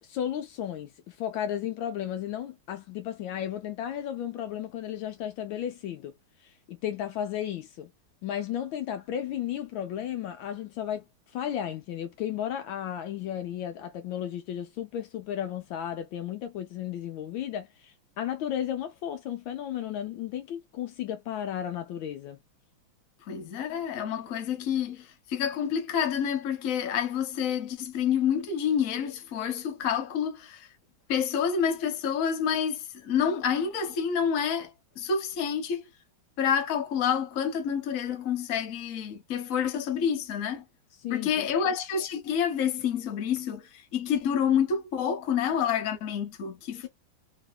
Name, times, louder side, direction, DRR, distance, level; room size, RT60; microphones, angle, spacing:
voice 1, 0.0-6.1 6.4-7.9 8.2-22.4 41.0-41.5 46.8-46.9, left 10 dB, 75° left, 1.3 m, -34 dB
voice 2, 23.3-30.7 31.1-34.7 35.0-35.8 36.4-40.6 41.1-46.9, left 7 dB, 55° left, 1.0 m, -28 dB
3.1 x 2.9 x 2.2 m
omnidirectional pair, 2.3 m